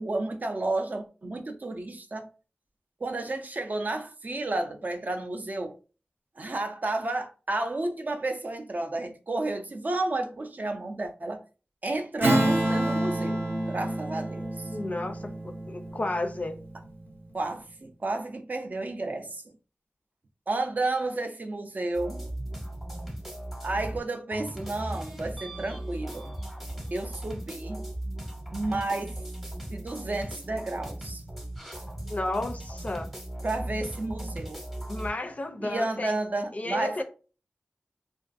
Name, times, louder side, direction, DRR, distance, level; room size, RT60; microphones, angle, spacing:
voice 1, 0.0-2.3 3.0-5.8 6.4-11.4 11.8-14.7 17.3-19.4 20.5-22.2 23.6-26.3 26.9-27.8 28.5-29.2 29.7-31.2 33.4-34.6 35.6-37.0, right 2 dB, 50° right, 0.4 m, -31 dB
Strum, 12.2-17.1, right 1 dB, 70° right, 0.8 m, -28 dB
voice 2, 14.7-16.6 32.1-33.1 34.9-36.1 36.5-37.0, left 2 dB, 40° left, 0.4 m, -32 dB
sound 1, 21.9-24.0 24.3-35.1, right 1 dB, 5° right, 0.7 m, -37 dB
2.4 x 2.3 x 2.5 m
wide cardioid pair, 70°, 4 cm